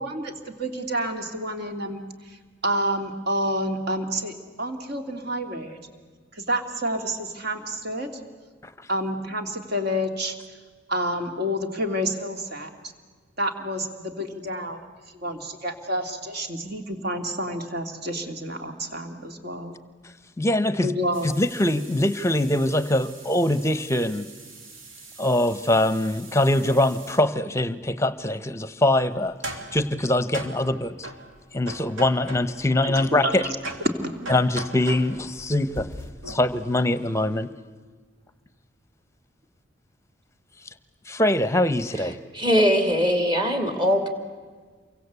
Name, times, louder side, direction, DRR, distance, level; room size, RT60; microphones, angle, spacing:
voice 1, 0.0-5.8 6.3-8.1 8.9-10.4 10.9-12.9 13.4-14.8 15.1-19.7 20.8-21.3 32.8-33.6 33.8-34.4, equal, 55° right, 5 dB, 2.8 m, -29 dB
voice 2, 20.4-20.9 21.4-24.3 25.2-29.3 29.7-31.1 31.5-33.5 34.3-35.9 36.3-37.5 41.1-42.2, left 1 dB, 15° left, 13 dB, 0.9 m, -23 dB
sound 1, 21.1-27.2 29.1-32.7 33.0-36.6, right 1 dB, 80° right, 3.5 m, -41 dB
voice 3, 42.3-44.1, equal, 25° right, 6 dB, 2.9 m, -21 dB
28.5 x 23.5 x 8.2 m, 1.5 s
head